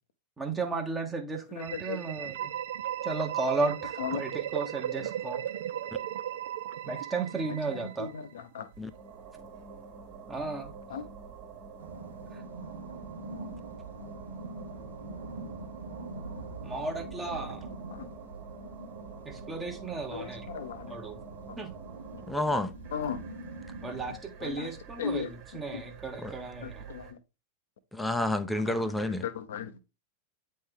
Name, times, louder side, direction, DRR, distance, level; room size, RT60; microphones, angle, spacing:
voice 1, 0.4-2.3 3.0-5.4 6.9-8.1 10.3-10.7 16.6-17.7 19.3-20.4 20.9-21.1 21.6-21.7 23.8-25.2 25.5-26.7, right 3 dB, 15° right, 1.0 m, -34 dB
voice 2, 1.5-2.5 4.0-4.2 7.5-8.7 10.9-11.1 17.9-18.1 20.1-21.0 21.5-21.6 22.1-22.2 22.9-23.2 24.4-25.3 25.7-25.9 26.1-26.2 26.6-27.2 28.5-28.7 29.1-29.8, left 7 dB, 60° left, 0.7 m, -37 dB
sound 1, 1.6-8.3, right 11 dB, 55° right, 0.4 m, -36 dB
sound 2, 8.7-27.1, right 5 dB, 40° right, 1.4 m, -47 dB
sound 3, 11.8-24.2, right 3 dB, 75° right, 0.9 m, -44 dB
voice 3, 22.3-22.7 26.2-26.3 27.9-29.2, left 1 dB, 5° left, 0.6 m, -29 dB
8.7 x 3.2 x 3.6 m
figure-of-eight pair, 90°, 0 cm